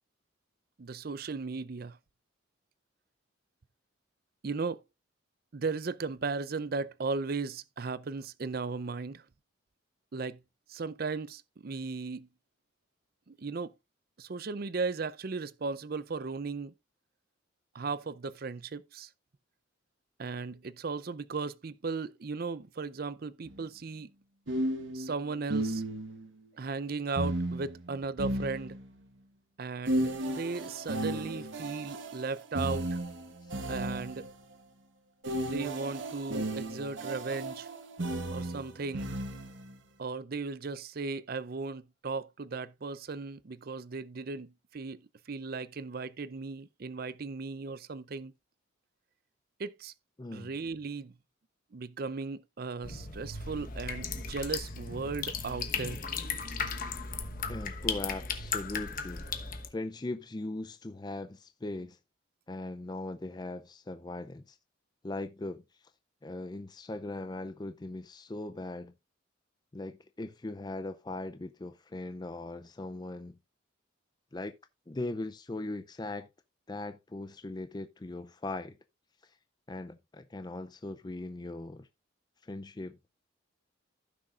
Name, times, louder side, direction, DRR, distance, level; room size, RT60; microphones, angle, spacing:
voice 1, 0.8-2.0 4.4-4.8 5.5-9.2 10.1-10.4 10.7-12.3 13.3-13.7 14.2-16.7 17.7-19.1 20.2-24.1 24.9-25.8 26.5-28.8 29.6-33.0 33.7-34.3 35.4-37.7 38.3-39.1 40.0-45.0 45.3-48.3 49.6-49.9 50.3-51.2 51.7-56.0, right 4 dB, 50° right, 0.5 m, -36 dB
sound 1, 23.5-23.6 24.5-26.3 27.2-29.1 29.9-34.4 35.2-39.7, right 1 dB, 70° right, 1.2 m, -34 dB
voice 2, 50.2-50.5 57.5-59.3 59.7-62.0 62.5-64.6 65.0-65.6 66.2-68.9 69.7-73.4 74.3-74.5 74.9-76.3 76.7-78.8 79.2-79.4 79.7-81.9 82.4-83.0, left 2 dB, 20° left, 0.4 m, -39 dB
sound 2, 52.8-59.7, left 5 dB, 45° left, 1.1 m, -36 dB
15.5 x 6.3 x 2.4 m
head